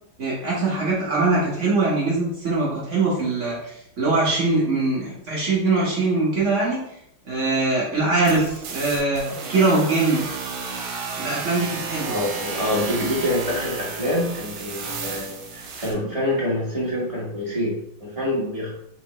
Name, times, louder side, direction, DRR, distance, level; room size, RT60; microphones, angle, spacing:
voice 1, 0.2-6.8 7.3-10.2 11.2-12.2, right 3 dB, 45° right, -5 dB, 1.2 m, -22 dB
sound 1, 8.2-15.9, right 4 dB, 80° right, 1.6 m, -32 dB
voice 2, 12.0-18.7, left 1 dB, 20° right, -6 dB, 1.0 m, -26 dB
4.6 x 3.4 x 3.0 m, 0.75 s
omnidirectional pair, 2.2 m